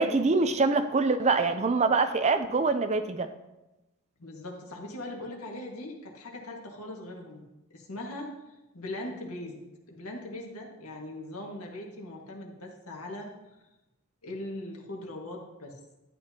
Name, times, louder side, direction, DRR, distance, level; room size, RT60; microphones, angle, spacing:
voice 1, 0.0-3.3, right 3 dB, 30° right, 9 dB, 0.5 m, -24 dB
voice 2, 4.2-7.4 7.7-13.3 14.2-15.8, left 1 dB, 85° left, 0 dB, 1.8 m, -40 dB
12.0 x 8.8 x 2.9 m, 0.99 s
head